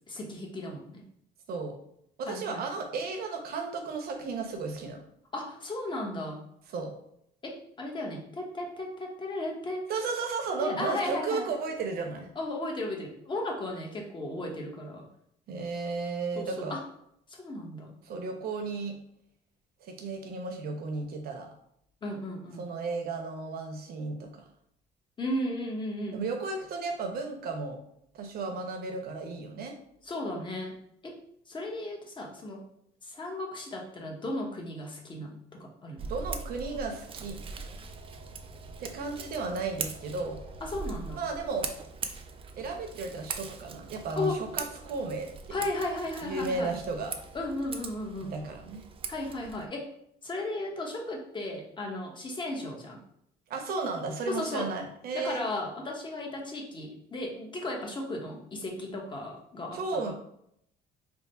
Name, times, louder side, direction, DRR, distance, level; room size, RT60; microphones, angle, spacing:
voice 1, 0.1-1.0 2.3-2.6 5.3-6.4 7.4-9.9 10.6-11.5 12.3-15.1 16.4-16.8 17.3-17.9 22.0-22.7 25.2-26.2 30.0-30.7 31.0-31.2 31.5-32.6 33.0-36.1 40.6-41.2 44.2-44.4 45.5-46.7 47.3-48.3 49.1-49.9 50.2-53.0 54.3-54.7 55.1-59.8 60.1-60.2, left 1 dB, 30° left, 0 dB, 0.9 m, -35 dB
voice 2, 2.2-5.0 6.7-6.9 9.9-12.3 15.5-16.8 18.0-19.0 19.8-21.5 22.6-24.3 26.1-27.8 28.1-29.7 36.1-37.4 38.8-40.4 41.1-41.7 42.6-45.6 46.2-47.1 48.3-48.8 53.5-55.4 59.7-60.1, right 4 dB, 65° right, 3 dB, 0.8 m, -34 dB
Scissors, 36.0-49.7, right 5 dB, 35° right, 0.4 m, -41 dB
3.5 x 2.1 x 4.2 m, 0.72 s
cardioid pair, 110°, 17 cm